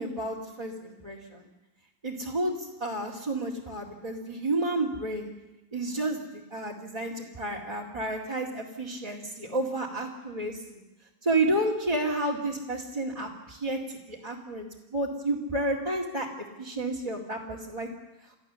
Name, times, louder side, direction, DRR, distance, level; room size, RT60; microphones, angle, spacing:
voice 1, 0.0-1.4 2.0-5.3 5.7-6.2 6.5-10.8 11.2-17.9, right 2 dB, 20° right, -3 dB, 2.3 m, -31 dB
30.0 x 14.0 x 7.0 m, 1.0 s
omnidirectional pair, 2.1 m